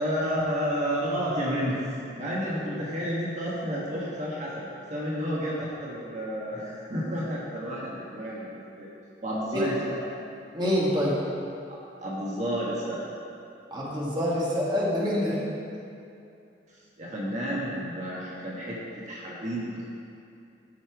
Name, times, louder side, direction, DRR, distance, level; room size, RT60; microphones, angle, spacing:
voice 1, 0.0-1.8 2.1-8.9 9.2-10.0 11.7-13.2 16.7-19.8, equal, 40° right, -6 dB, 1.4 m, -31 dB
voice 2, 10.5-11.2 13.7-15.4, equal, 25° right, -5 dB, 1.5 m, -26 dB
13.0 x 5.4 x 4.7 m, 2.6 s
head